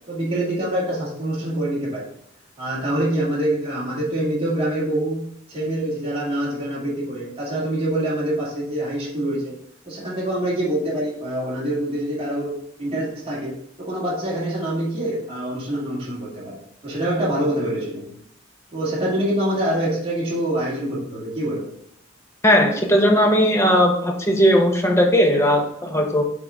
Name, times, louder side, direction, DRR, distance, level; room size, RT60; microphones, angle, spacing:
voice 1, 0.1-2.1 2.6-9.5 9.8-16.6 16.8-18.1 18.7-21.7, right 1 dB, 30° right, -7 dB, 2.1 m, -25 dB
voice 2, 22.4-26.2, equal, 15° left, 2 dB, 0.9 m, -17 dB
6.8 x 3.8 x 3.6 m, 0.74 s
head